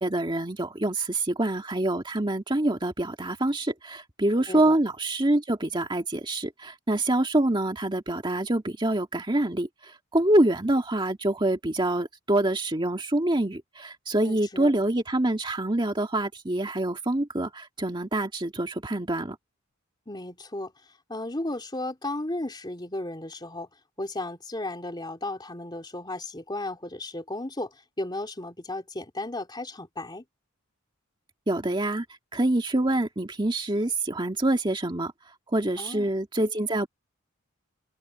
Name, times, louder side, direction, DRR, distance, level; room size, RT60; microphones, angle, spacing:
voice 1, 0.0-19.4 31.5-32.1 32.3-35.1 35.5-36.9, right 1 dB, 25° right, 1.9 m, -26 dB
voice 2, 14.2-14.7 20.1-20.7 21.1-23.7 24.0-30.2 35.8-36.1, left 2 dB, 20° left, 3.2 m, -34 dB
open air
head